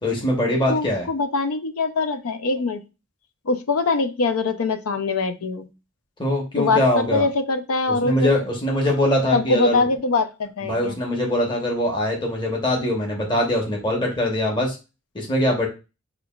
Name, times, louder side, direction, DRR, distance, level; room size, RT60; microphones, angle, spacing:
voice 1, 0.0-1.1 6.2-7.3 7.9-9.9 10.7-14.8 15.1-15.7, left 1 dB, 20° left, -1 dB, 1.0 m, -22 dB
voice 2, 0.7-2.8 3.4-5.7 6.6-8.3 9.3-11.0, left 3 dB, 85° left, 10 dB, 0.5 m, -23 dB
5.6 x 2.3 x 2.3 m, 0.29 s
head